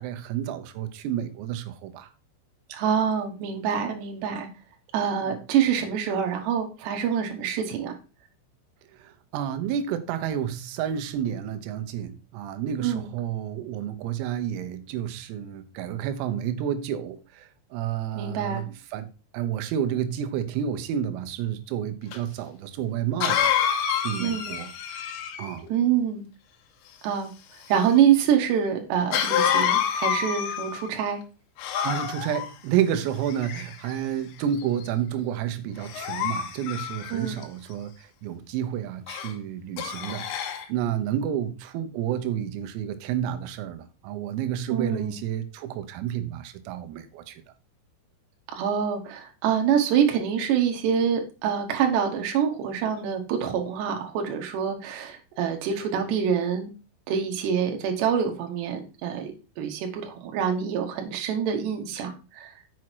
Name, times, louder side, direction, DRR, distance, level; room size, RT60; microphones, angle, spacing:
voice 1, 0.0-2.1 5.2-5.4 8.9-19.1 19.3-23.5 23.9-24.7 25.4-25.7 31.8-47.4, right 10 dB, 90° right, 3.6 m, -30 dB
voice 2, 2.7-4.5 4.9-7.9 12.8-13.1 18.2-18.6 24.2-24.5 25.7-26.3 27.0-27.3 27.7-31.2 37.1-37.4 44.7-45.1 48.5-56.7 57.1-62.5, right 8 dB, 65° right, 3.2 m, -25 dB
Cough, 22.1-22.2 23.2-25.6 29.1-30.9 31.6-32.5 33.3-33.9 34.5-34.8 35.8-37.4 39.1-39.3 39.8-40.7, left 9 dB, 75° left, 2.9 m, -27 dB
7.1 x 6.2 x 4.5 m
omnidirectional pair, 6.0 m